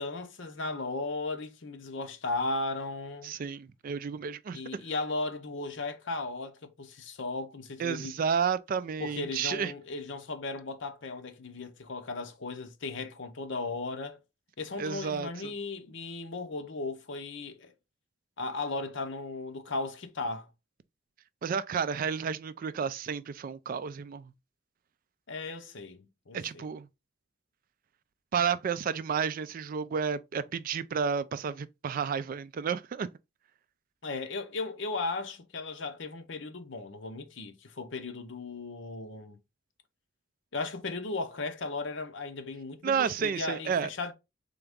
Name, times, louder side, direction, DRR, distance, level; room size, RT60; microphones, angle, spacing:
voice 1, 0.0-3.3 4.5-8.2 9.0-14.2 14.6-17.7 18.4-20.5 25.3-26.7 34.0-39.4 40.5-44.1, left 3 dB, 70° left, 0.8 m, -36 dB
voice 2, 3.2-4.8 7.8-9.7 14.8-15.3 21.4-24.3 26.3-26.9 28.3-33.1 42.8-43.9, right 6 dB, 45° right, 0.3 m, -31 dB
3.9 x 3.4 x 3.6 m
head